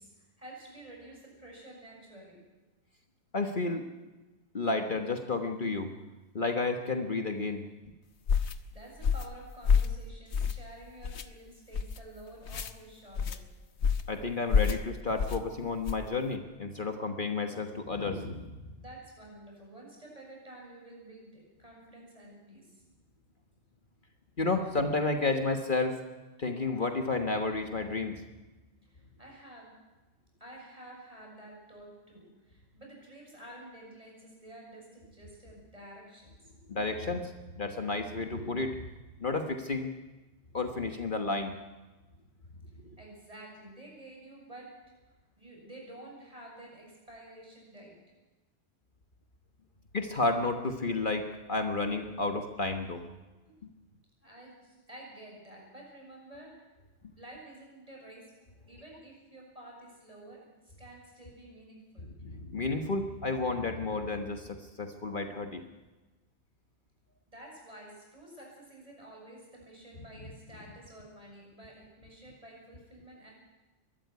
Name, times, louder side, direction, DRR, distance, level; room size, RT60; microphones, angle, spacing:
voice 1, 0.0-2.4 8.4-13.4 18.8-22.8 28.8-29.8 30.4-36.3 43.0-44.7 45.4-48.0 53.5-53.6 54.2-56.7 57.2-58.3 58.7-60.5 60.8-62.1 67.3-73.3, right 1 dB, 30° right, -2 dB, 7.2 m, -50 dB
voice 2, 3.3-3.8 4.5-5.9 6.3-7.7 14.1-18.6 24.4-26.0 26.4-28.1 36.7-38.8 39.2-39.9 40.5-41.5 49.9-53.0 62.0-65.6, left 3 dB, 50° left, 5 dB, 1.5 m, -31 dB
sound 1, 8.3-8.6 9.0-9.3 9.6-10.0 10.3-10.7 11.0-11.2 11.7-12.0 12.4-12.7 13.1-13.4 13.8-14.1 14.5-14.8 15.2-15.4 15.8-16.1, left 6 dB, 85° left, 1.3 m, -27 dB
22.0 x 13.0 x 9.6 m, 1.2 s
omnidirectional pair, 1.1 m